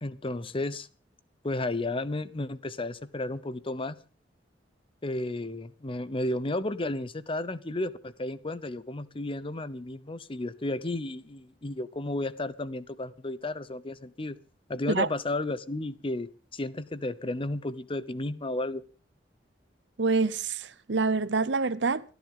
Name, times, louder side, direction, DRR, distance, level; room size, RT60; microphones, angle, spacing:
voice 1, 0.0-0.9 1.4-4.0 5.0-14.4 14.7-18.8, left 2 dB, 30° left, 0.8 m, -33 dB
voice 2, 20.0-22.0, right 4 dB, 70° right, 0.8 m, -26 dB
29.0 x 10.5 x 3.8 m
head